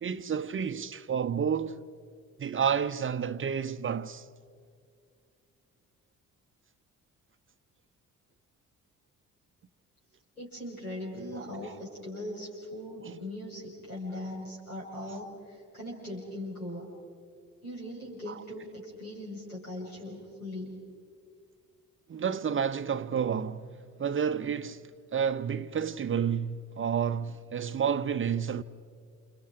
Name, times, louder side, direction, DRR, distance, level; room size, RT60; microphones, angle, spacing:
voice 1, 0.0-1.8 2.4-4.2 11.4-11.5 13.0-13.2 22.1-23.7 24.0-28.6, right 7 dB, 30° right, 0.8 m, -30 dB
voice 2, 10.4-16.9 17.6-20.7, left 1 dB, 85° left, 6.6 m, -40 dB
30.0 x 29.5 x 5.0 m
figure-of-eight pair, 40°, 42 cm